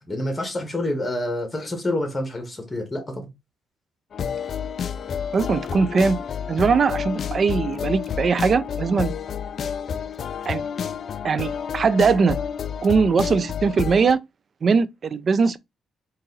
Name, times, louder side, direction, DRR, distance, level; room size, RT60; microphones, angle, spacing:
voice 1, 0.1-3.3, left 1 dB, 15° left, 1.6 m, -27 dB
sound 1, 4.1-14.1, left 7 dB, 55° left, 0.3 m, -29 dB
voice 2, 5.3-6.2 6.5-9.1 10.5-10.6 11.2-12.4 12.8-14.2 14.6-15.6, right 5 dB, 45° right, 0.4 m, -20 dB
3.9 x 2.6 x 3.9 m
cardioid pair, 90°, 0 cm